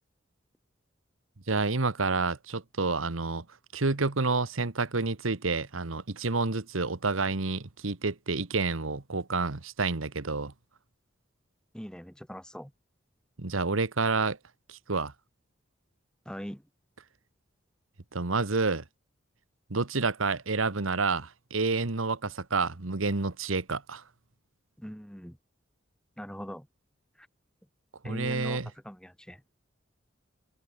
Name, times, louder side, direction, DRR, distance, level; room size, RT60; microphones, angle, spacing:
voice 1, 1.5-3.4 3.7-10.5 13.4-14.4 14.7-15.1 18.1-18.8 19.7-24.0 28.0-28.7, right 3 dB, 90° right, 1.4 m, -29 dB
voice 2, 11.7-12.7 16.3-16.6 24.8-25.4 26.2-26.7 27.2-27.3 28.0-28.6 28.8-29.4, equal, 5° left, 3.8 m, -41 dB
head